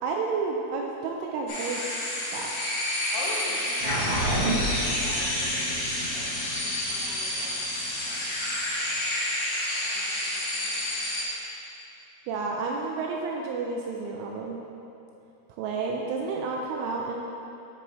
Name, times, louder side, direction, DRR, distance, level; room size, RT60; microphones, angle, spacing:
voice 1, 0.0-1.8 2.3-2.5 12.3-14.6 15.6-17.2, right 4 dB, 85° right, 0 dB, 2.8 m, -30 dB
sound 1, 1.5-11.2, left 1 dB, 60° left, 2.3 m, -29 dB
voice 2, 3.1-8.6 9.8-10.9, left 2 dB, 80° left, -3 dB, 3.6 m, -43 dB
sound 2, 3.8-8.6, right 1 dB, 65° right, 2.2 m, -31 dB
9.8 x 5.4 x 3.0 m, 2.9 s
omnidirectional pair, 5.9 m